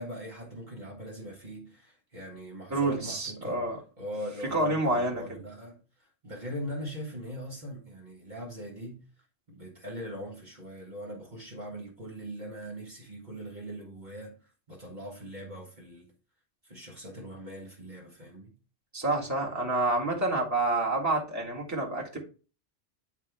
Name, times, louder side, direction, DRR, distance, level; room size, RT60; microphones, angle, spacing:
voice 1, 0.0-3.7 4.0-9.0 9.5-16.1 16.6-18.5, equal, 40° right, 1.6 m, -41 dB
voice 2, 2.7-3.8 4.5-5.4 18.9-22.2, right 2 dB, 15° right, 1.7 m, -28 dB
9.8 x 3.6 x 3.4 m
omnidirectional pair, 1.2 m